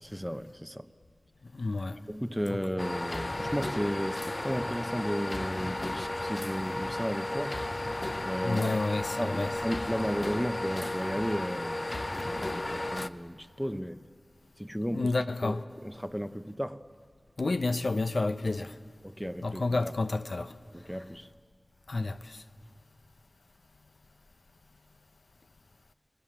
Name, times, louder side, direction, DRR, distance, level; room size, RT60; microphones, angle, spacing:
voice 1, 0.0-0.9 2.1-7.6 8.2-8.8 9.2-14.0 14.6-15.1 15.4-16.8 19.0-19.9 20.7-21.3, equal, ahead, 0.7 m, -34 dB
voice 2, 1.4-2.0 2.5-2.6 8.4-9.6 14.9-15.6 17.4-18.8 19.4-20.6 21.9-22.4, left 3 dB, 75° left, 0.8 m, -30 dB
sound 1, 2.8-13.1, left 1 dB, 40° left, 0.7 m, -34 dB
30.0 x 20.5 x 7.3 m
wide cardioid pair, 55°, 0 cm